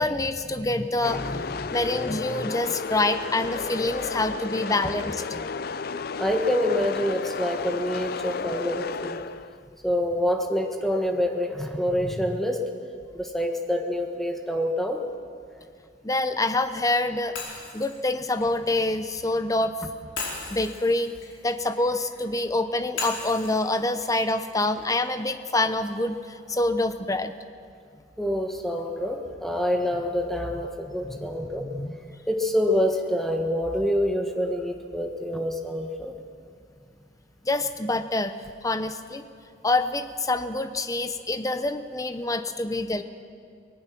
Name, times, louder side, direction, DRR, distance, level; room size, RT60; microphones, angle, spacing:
voice 1, 0.0-5.2 11.6-11.7 12.0-12.1 16.0-19.7 20.5-21.1 21.4-27.3 31.0-31.3 31.6-32.0 37.4-38.3 38.6-39.2 39.6-43.0, left 2 dB, 15° left, 10 dB, 0.8 m, -26 dB
sound 1, 1.0-9.7, left 5 dB, 50° left, 0.5 m, -33 dB
voice 2, 6.2-9.2 9.8-12.7 13.1-15.0 28.2-31.7 32.3-36.1, equal, ahead, 3 dB, 1.5 m, -26 dB
Shatter, 17.4-19.4 20.2-22.3 23.0-25.1, left 4 dB, 90° left, 4.9 m, -38 dB
24.0 x 18.0 x 6.0 m, 2.3 s
head